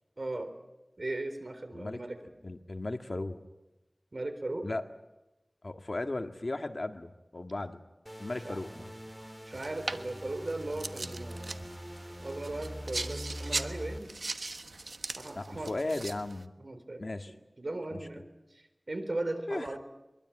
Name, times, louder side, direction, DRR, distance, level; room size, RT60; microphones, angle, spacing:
voice 1, 0.2-0.5 1.0-2.2 4.1-4.7 8.4-8.6 9.5-11.6 12.2-14.1 15.2-15.7 16.6-17.0 17.6-19.8, right 2 dB, 65° right, 8 dB, 3.9 m, -37 dB
voice 2, 2.4-3.4 4.6-4.8 5.6-7.8 8.2-8.9 15.4-16.5 17.0-17.3 17.9-18.0 19.5-19.8, left 2 dB, 60° left, 6 dB, 1.9 m, -36 dB
sound 1, 8.1-14.0, equal, 10° right, 2.4 m, -43 dB
sound 2, 9.5-16.4, right 2 dB, 85° right, 1.2 m, -40 dB
23.5 x 23.0 x 8.9 m, 1.0 s
wide cardioid pair, 50°, 0 cm